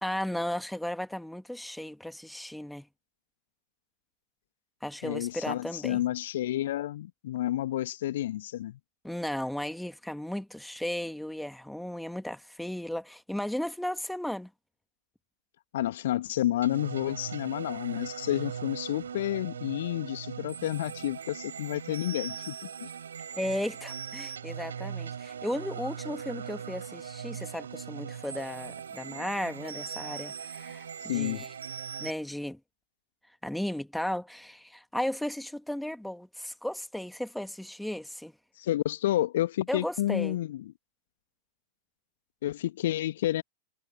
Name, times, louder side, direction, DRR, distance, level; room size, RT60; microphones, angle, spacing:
voice 1, 0.0-2.9 4.8-6.0 9.0-14.5 23.4-31.5 32.0-32.6 33.4-38.3 39.7-40.4, left 1 dB, ahead, 2.3 m, -35 dB
voice 2, 5.0-8.8 15.7-22.9 31.0-31.4 38.6-40.6 42.4-43.4, left 13 dB, 55° left, 1.7 m, -30 dB
sound 1, 16.6-32.1, right 7 dB, 70° right, 4.4 m, -40 dB
figure-of-eight pair, 90°, 0 cm